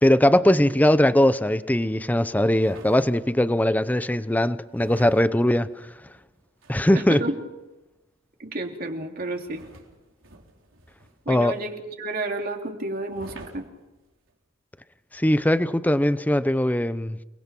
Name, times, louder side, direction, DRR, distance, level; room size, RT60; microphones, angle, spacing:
voice 1, 0.0-5.7 6.7-7.2 11.3-11.6 15.1-17.2, left 1 dB, 10° left, 14 dB, 0.7 m, -20 dB
sound 1, 2.6-3.5 4.7-7.1 9.4-11.4 13.1-14.3 15.2-15.4, right 2 dB, 80° right, 4.1 m, -47 dB
voice 2, 6.9-7.3 8.4-9.6 11.2-11.7 12.0-13.6, right 2 dB, 45° right, 2 dB, 2.9 m, -30 dB
29.0 x 20.5 x 6.0 m, 1.0 s
head